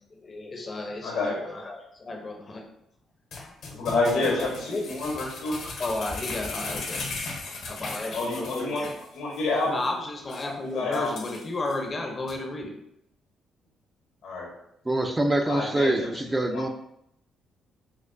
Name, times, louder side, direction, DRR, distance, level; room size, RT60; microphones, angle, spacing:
voice 1, 0.1-2.7 3.4-3.5 4.2-5.0 5.4-7.2 7.7-9.1 9.7-12.8, left 2 dB, 35° left, 2 dB, 0.6 m, -33 dB
voice 2, 1.0-1.4 3.7-5.6 8.1-9.7 10.7-11.1 14.2-14.5 15.5-15.9 16.5-16.6, left 2 dB, 90° left, -2 dB, 1.3 m, -28 dB
sound 1, 3.3-9.0 9.3-9.4 9.8-9.9 10.3-10.5 10.9-11.7 12.3-12.4, left 3 dB, 70° left, 0.8 m, -37 dB
voice 3, 14.8-16.7, right 1 dB, 15° right, 5 dB, 0.4 m, -25 dB
4.4 x 2.2 x 2.5 m, 0.76 s
cardioid pair, 90°, 0 cm